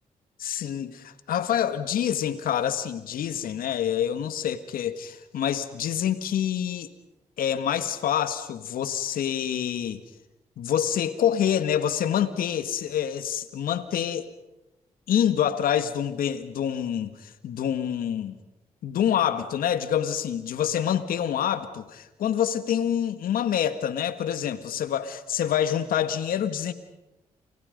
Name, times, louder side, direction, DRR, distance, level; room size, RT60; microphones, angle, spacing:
voice 1, 0.4-6.9 7.4-10.0 10.6-14.3 15.1-18.4 18.8-26.7, left 9 dB, 80° left, 12 dB, 1.8 m, -26 dB
29.5 x 29.0 x 5.3 m, 0.96 s
supercardioid pair, 55°, 15 cm